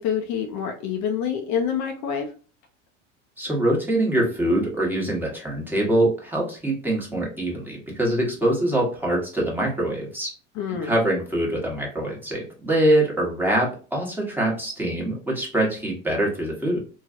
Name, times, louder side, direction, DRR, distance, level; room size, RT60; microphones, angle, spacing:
voice 1, 0.0-2.3 10.6-11.0, left 8 dB, 50° left, 4 dB, 0.6 m, -27 dB
voice 2, 3.4-10.3 10.8-16.8, right 1 dB, 5° right, -3 dB, 1.2 m, -24 dB
3.2 x 2.3 x 2.5 m, 0.38 s
hypercardioid pair, 85°, 37 cm